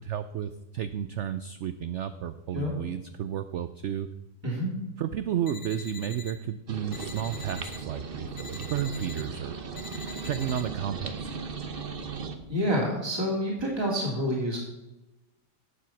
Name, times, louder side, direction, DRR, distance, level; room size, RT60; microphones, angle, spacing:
voice 1, 0.0-4.1 5.0-9.6 10.2-11.3, right 9 dB, 75° right, 11 dB, 0.6 m, -32 dB
voice 2, 4.4-4.7 12.5-14.6, equal, 15° right, -2 dB, 2.5 m, -28 dB
sound 1, 5.5-6.3 6.9-7.8 8.4-9.2 9.8-10.6, left 4 dB, 80° left, 2.2 m, -44 dB
sound 2, 6.7-12.3, right 5 dB, 40° right, 1.0 m, -37 dB
11.0 x 7.5 x 5.9 m, 1.0 s
omnidirectional pair, 1.7 m